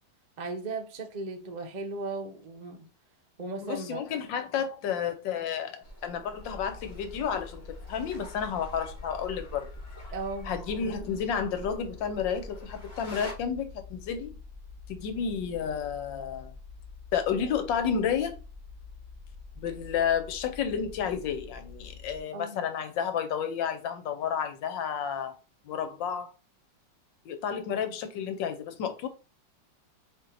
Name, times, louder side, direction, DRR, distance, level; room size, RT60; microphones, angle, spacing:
voice 1, 0.4-2.9 3.4-4.1 10.1-10.5 22.3-22.6, right 3 dB, 45° right, 0.5 m, -36 dB
voice 2, 3.6-9.7 10.4-14.4 14.9-16.5 17.1-18.4 19.6-25.3 25.6-26.3 27.2-29.1, left 7 dB, 85° left, 1.5 m, -31 dB
sound 1, 5.8-13.3, equal, 35° left, 1.9 m, -46 dB
sound 2, 6.4-22.2, left 4 dB, 25° right, 1.0 m, -47 dB
4.4 x 3.2 x 3.8 m
omnidirectional pair, 2.0 m